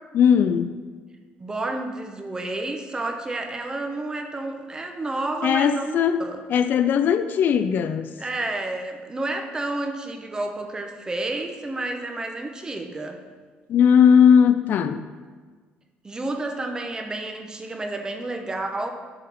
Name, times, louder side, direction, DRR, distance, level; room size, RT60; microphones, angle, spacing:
voice 1, 0.1-0.7 5.4-6.2 6.5-8.1 13.7-15.0, left 7 dB, 55° left, 11 dB, 0.3 m, -18 dB
voice 2, 1.4-6.4 8.2-13.2 16.0-18.9, right 2 dB, 20° right, 4 dB, 0.9 m, -30 dB
10.5 x 3.9 x 4.1 m, 1.5 s
cardioid pair, 115°, 4 cm